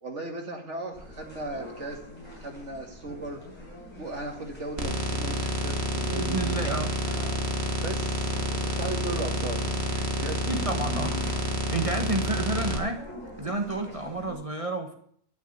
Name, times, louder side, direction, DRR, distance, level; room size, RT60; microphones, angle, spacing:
voice 1, 0.0-2.0 2.4-3.4 4.0-6.8 7.8-9.6 10.1-10.4, right 2 dB, 80° right, 2 dB, 2.6 m, -37 dB
sound 1, 0.9-14.4, equal, 20° left, 6.5 m, -44 dB
sound 2, 4.8-12.8, equal, 65° right, 2.0 m, -29 dB
voice 2, 6.1-6.9 10.5-11.4 11.7-13.0 13.4-14.9, right 2 dB, 30° right, 4 dB, 1.1 m, -30 dB
11.5 x 7.2 x 8.8 m, 0.63 s
omnidirectional pair, 1.2 m